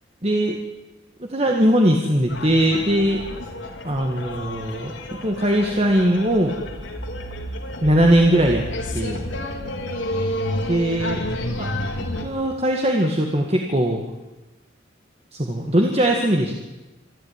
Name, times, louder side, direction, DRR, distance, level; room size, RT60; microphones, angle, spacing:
voice 1, 0.2-0.6 1.2-3.2 3.8-4.9 5.2-6.5 7.8-8.6 8.9-9.2 10.7-11.2 11.6-11.7 12.2-14.0 15.3-16.5, right 1 dB, 30° right, 1 dB, 2.0 m, -20 dB
sound 1, 2.3-12.3, left 1 dB, 80° left, 3.2 m, -30 dB
27.0 x 12.0 x 9.9 m, 1.1 s
head